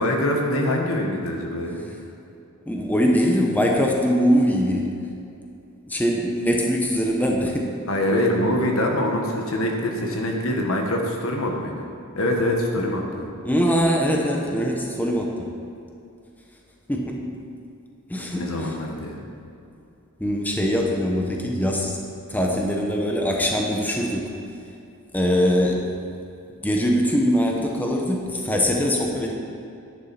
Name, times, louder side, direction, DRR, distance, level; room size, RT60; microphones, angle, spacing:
voice 1, 0.0-1.8 7.9-11.9 12.2-13.3 18.3-19.2, left 1 dB, 65° left, 1 dB, 1.6 m, -24 dB
voice 2, 2.7-4.9 5.9-7.7 13.4-15.5 16.9-17.2 18.1-18.7 20.2-22.0 22.3-24.3 25.1-25.8 26.6-29.3, equal, 10° left, -1 dB, 0.8 m, -22 dB
11.0 x 10.0 x 4.3 m, 2.6 s
head